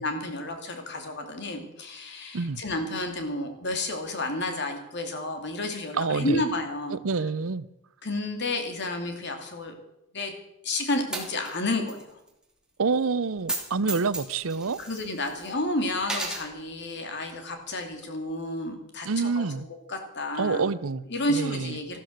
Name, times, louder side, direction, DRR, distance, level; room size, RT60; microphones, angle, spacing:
voice 1, 0.0-7.0 8.0-9.7 10.1-10.3 10.6-12.1 14.8-19.5 19.9-20.6 21.1-22.0, left 2 dB, 55° left, 2.6 m, -31 dB
voice 2, 5.9-6.4 6.9-7.7 12.8-14.8 19.0-19.7 20.4-21.0 21.3-21.8, right 4 dB, 75° right, 0.7 m, -27 dB
Coin (dropping), 11.1-12.0 12.3-12.4 13.4-13.6 13.9-15.5 16.0-16.4, right 2 dB, 5° right, 2.7 m, -33 dB
13.5 x 12.5 x 6.5 m
head